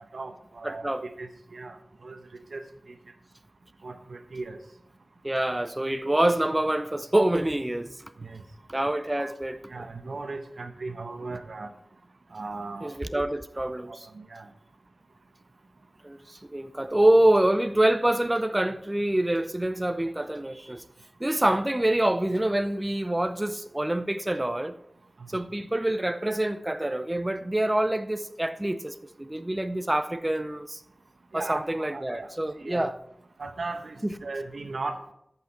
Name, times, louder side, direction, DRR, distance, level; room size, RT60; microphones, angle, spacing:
voice 1, 0.1-0.9 1.2-1.8 2.0-2.2 2.5-2.6 3.8-4.6 8.2-8.4 9.2-9.3 9.7-11.7 12.3-12.9 13.6-14.5 31.3-32.3 32.6-32.9 33.4-35.0, right 3 dB, 80° right, 0.9 m, -37 dB
voice 2, 0.6-1.0 5.2-8.1 8.7-9.6 12.8-14.1 16.0-20.8 21.2-24.7 25.3-30.8 31.3-32.9 34.0-34.2, right 1 dB, 20° right, 0.5 m, -26 dB
13.5 x 5.8 x 4.3 m
wide cardioid pair, 75°, 0 cm